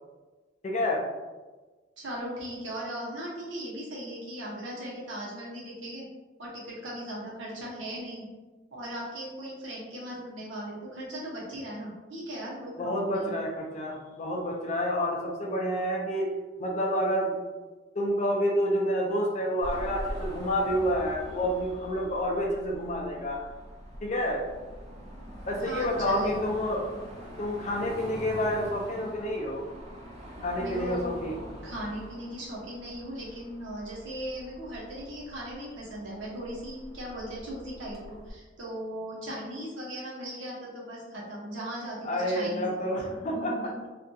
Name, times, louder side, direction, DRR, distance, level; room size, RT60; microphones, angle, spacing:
voice 1, 0.6-1.0 12.8-16.3 16.6-17.4 17.9-23.4 24.0-24.4 25.5-26.8 27.4-29.6 30.4-31.4 42.0-43.5, equal, 40° left, -1 dB, 0.4 m, -29 dB
voice 2, 2.0-6.1 6.4-8.2 8.7-13.4 25.6-26.6 30.6-31.1 31.6-43.8, right 1 dB, 85° right, -5 dB, 0.9 m, -38 dB
Car passing by / Traffic noise roadway noise / Engine, 19.6-38.3, equal, 35° right, 0.6 m, -43 dB
2.6 x 2.4 x 2.3 m, 1.3 s
head